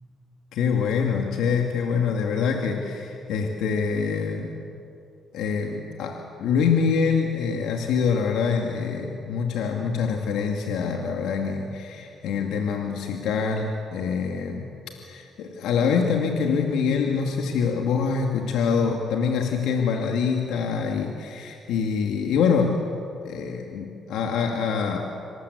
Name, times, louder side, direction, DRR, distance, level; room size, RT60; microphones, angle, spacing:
voice 1, 0.5-4.6 5.3-14.7 15.0-22.8 23.2-25.0, left 6 dB, 90° left, 1 dB, 2.4 m, -25 dB
27.0 x 26.5 x 8.3 m, 2.7 s
cardioid pair, 90°, 0 cm